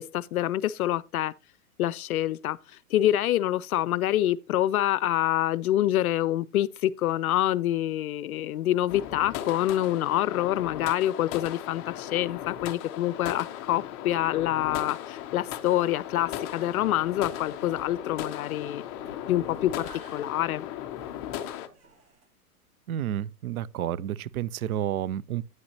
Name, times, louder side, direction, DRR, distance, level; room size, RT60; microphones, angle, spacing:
voice 1, 0.0-1.3 1.8-18.8 19.3-20.7, left 13 dB, 70° left, 0.5 m, -26 dB
sound 1, 8.9-21.7, left 11 dB, 20° left, 0.4 m, -37 dB
sound 2, 16.1-22.3, right 3 dB, 35° right, 2.3 m, -54 dB
voice 2, 22.9-25.4, right 11 dB, 65° right, 0.6 m, -30 dB
9.4 x 8.6 x 2.8 m
hypercardioid pair, 125°, 46 cm